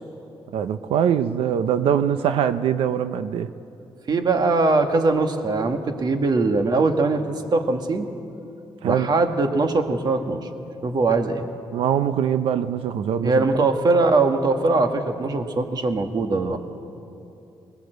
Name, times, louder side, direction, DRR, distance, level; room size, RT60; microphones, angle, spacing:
voice 1, 0.5-3.5 8.8-9.1 11.7-13.4, right 9 dB, 80° right, 0.7 m, -22 dB
voice 2, 4.1-8.1 8.8-10.5 10.8-11.4 13.2-16.6, right 3 dB, 50° right, 1.8 m, -21 dB
20.0 x 19.0 x 8.0 m
cardioid pair, 75°, 9 cm